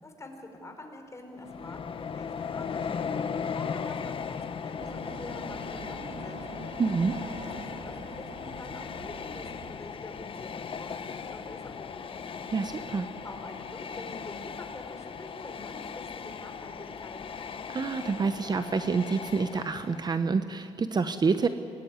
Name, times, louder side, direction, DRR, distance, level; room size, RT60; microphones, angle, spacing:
voice 1, 0.0-6.6 7.5-12.4 13.2-17.2, left 2 dB, 25° left, 4 dB, 4.4 m, -46 dB
Train, 1.4-20.3, left 6 dB, 50° left, 1.2 m, -38 dB
sound 1, 4.8-9.8, right 6 dB, 80° right, 2.0 m, -46 dB
voice 2, 6.8-7.2 12.5-13.1 17.7-21.5, right 4 dB, 35° right, 10 dB, 1.0 m, -27 dB
23.0 x 18.5 x 9.6 m, 2.4 s
cardioid pair, 95°, 12 cm